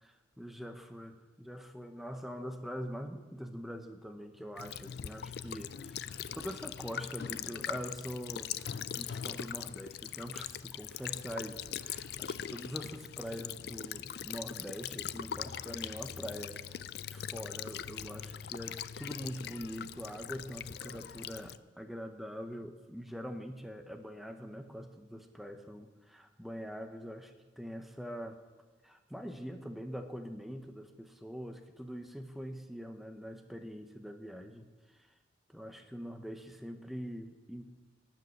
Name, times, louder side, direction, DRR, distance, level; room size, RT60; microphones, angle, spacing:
voice 1, 0.4-28.4 28.8-35.1 35.5-37.6, equal, ahead, 6 dB, 0.8 m, -44 dB
Child speech kid speaking / Bird vocalization bird call bird song / Stream, 4.6-21.6, left 9 dB, 55° left, 0.4 m, -41 dB
12.0 x 7.6 x 9.5 m, 1.3 s
head